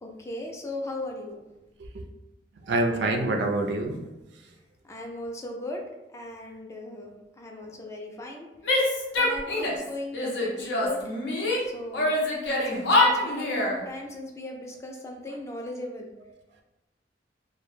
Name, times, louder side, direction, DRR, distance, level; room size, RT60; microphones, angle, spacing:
voice 1, 0.0-1.4 4.8-5.8 6.1-8.5 9.1-11.1 11.6-12.1 12.6-16.1, left 1 dB, 15° left, 1 dB, 0.3 m, -37 dB
voice 2, 2.7-4.0, right 2 dB, 70° right, 4 dB, 0.3 m, -26 dB
Female speech woman speaking / Yell, 8.6-9.9 10.1-11.6 11.9-13.8, left 2 dB, 80° left, 0.6 m, -25 dB
2.1 x 2.0 x 3.0 m, 1.0 s
head